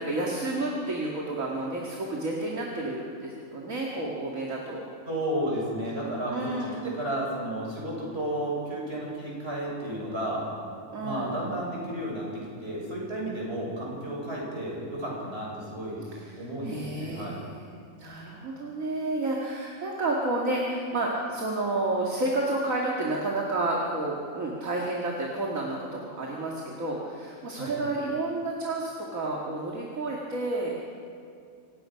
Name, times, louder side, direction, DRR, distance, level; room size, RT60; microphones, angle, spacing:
voice 1, 0.0-4.8 6.3-6.8 10.9-11.4 16.1-30.8, right 2 dB, 65° right, -2 dB, 2.6 m, -30 dB
voice 2, 5.1-10.5 11.0-16.0 16.4-17.5 27.6-27.7, right 1 dB, 45° right, -4 dB, 6.9 m, -32 dB
27.0 x 17.0 x 5.8 m, 2.4 s
omnidirectional pair, 1.5 m